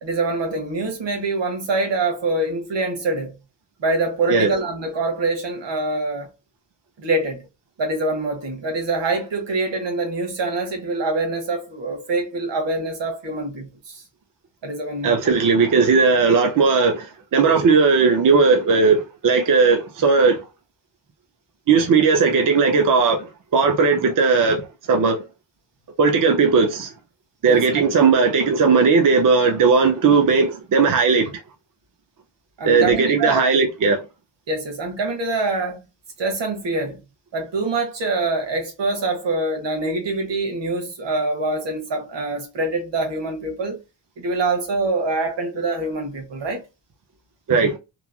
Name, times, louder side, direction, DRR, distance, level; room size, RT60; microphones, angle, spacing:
voice 1, 0.0-3.4 3.8-6.3 7.0-7.5 7.8-14.0 14.6-15.3 27.4-27.8 32.6-33.5 34.5-35.8 36.2-37.0 37.3-43.8 44.2-46.6, right 2 dB, 75° right, 1.1 m, -25 dB
voice 2, 15.0-20.4 21.7-24.6 24.9-25.2 26.0-26.9 27.4-31.3 32.6-34.0 47.5-47.8, right 4 dB, 45° right, 0.6 m, -17 dB
3.0 x 2.4 x 2.2 m
wide cardioid pair, 115°, 44 cm